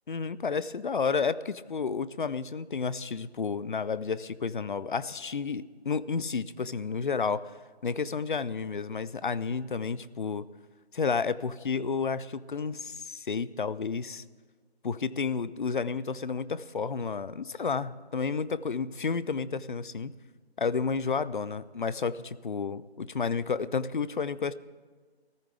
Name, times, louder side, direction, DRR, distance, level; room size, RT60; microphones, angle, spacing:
voice 1, 0.1-7.5 7.8-10.5 10.9-14.2 14.8-20.1 20.6-24.5, left 5 dB, 50° left, 17 dB, 0.5 m, -31 dB
20.5 x 14.0 x 3.4 m, 1.4 s
figure-of-eight pair, 165°, 33 cm